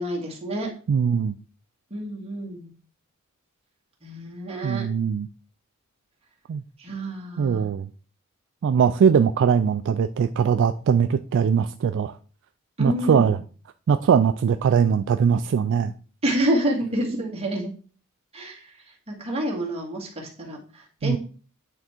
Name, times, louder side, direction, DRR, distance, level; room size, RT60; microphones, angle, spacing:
voice 1, 0.0-0.7 1.9-2.7 4.0-4.9 6.8-7.6 12.8-13.3 16.2-17.7 18.3-18.8 19.1-21.2, right 1 dB, 30° right, -1 dB, 1.9 m, -28 dB
voice 2, 0.9-1.4 4.6-5.3 6.5-6.6 7.4-7.9 8.6-12.2 12.8-13.4 13.9-15.9 21.0-21.2, right 7 dB, 60° right, 10 dB, 0.3 m, -21 dB
8.9 x 3.5 x 4.3 m, 0.40 s
head